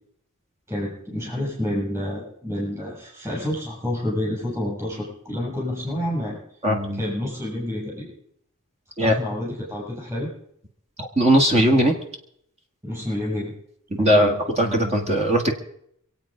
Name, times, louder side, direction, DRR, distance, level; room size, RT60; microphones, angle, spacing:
voice 1, 0.7-6.4 6.9-8.1 9.0-10.3 12.8-13.5 14.0-14.4, left 1 dB, 15° right, -4 dB, 7.2 m, -29 dB
voice 2, 6.6-7.0 9.0-9.1 11.0-12.0 14.0-15.5, equal, 30° right, 2 dB, 1.8 m, -19 dB
26.0 x 8.7 x 5.1 m, 0.69 s
head